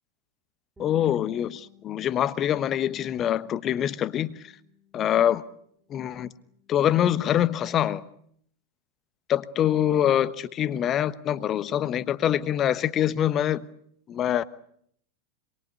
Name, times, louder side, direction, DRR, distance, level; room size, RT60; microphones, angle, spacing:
voice 1, 0.8-4.5 4.9-5.4 5.9-6.3 6.7-8.0 9.3-13.7 14.1-14.4, left 10 dB, 30° left, 1.2 m, -24 dB
Bass guitar, 5.8-7.0, left 6 dB, 10° right, 3.3 m, -57 dB
27.0 x 22.5 x 8.2 m
figure-of-eight pair, 90°, 0 cm